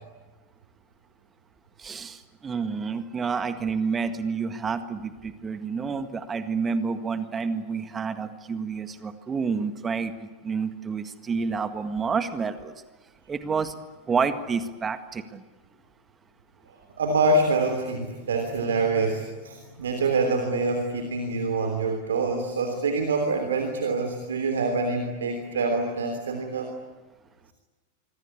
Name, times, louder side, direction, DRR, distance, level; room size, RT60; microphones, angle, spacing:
voice 1, 1.8-12.7 13.3-13.7 14.1-15.4, right 5 dB, 20° right, 10 dB, 1.8 m, -29 dB
voice 2, 17.0-26.7, right 3 dB, 65° right, 6 dB, 3.2 m, -25 dB
26.0 x 24.5 x 8.5 m, 1.3 s
figure-of-eight pair, 90°, 0 cm